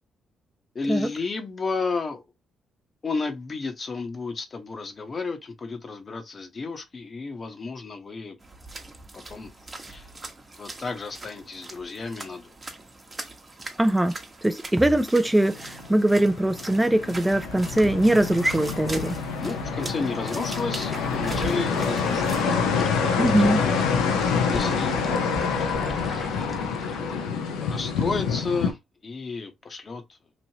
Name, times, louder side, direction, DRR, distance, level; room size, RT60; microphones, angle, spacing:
voice 1, 0.7-2.2 3.0-8.4 9.1-9.5 9.9-10.1 10.6-12.5 19.4-22.6 24.5-25.7 26.0-26.2 27.0-28.8 29.0-30.2, left 4 dB, 45° left, 1.0 m, -32 dB
sound 1, 8.4-22.4, right 2 dB, 30° right, 1.0 m, -40 dB
voice 2, 13.8-14.1 14.4-19.2 23.2-23.6, right 1 dB, 10° right, 0.4 m, -21 dB
sound 2, 15.3-28.7, left 5 dB, 85° left, 0.6 m, -27 dB
sound 3, 21.2-27.3, left 1 dB, 25° left, 1.1 m, -37 dB
3.0 x 2.6 x 2.8 m
supercardioid pair, 55°, 0 cm